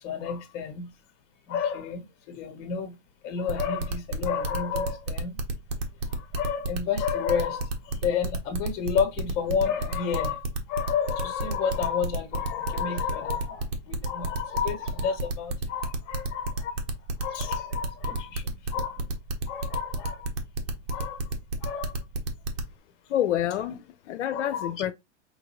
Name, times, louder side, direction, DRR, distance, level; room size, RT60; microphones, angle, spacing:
voice 1, 0.0-0.9 1.5-2.9 3.2-5.4 6.1-16.8 17.2-19.0 19.5-20.3 20.9-21.2 21.6-22.0 24.3-24.7, left 7 dB, 40° left, 1.3 m, -30 dB
sound 1, 3.5-22.7, right 2 dB, 55° right, 1.2 m, -30 dB
voice 2, 23.1-24.9, left 11 dB, 80° left, 0.6 m, -28 dB
5.1 x 2.6 x 3.0 m
hypercardioid pair, 135°, 36 cm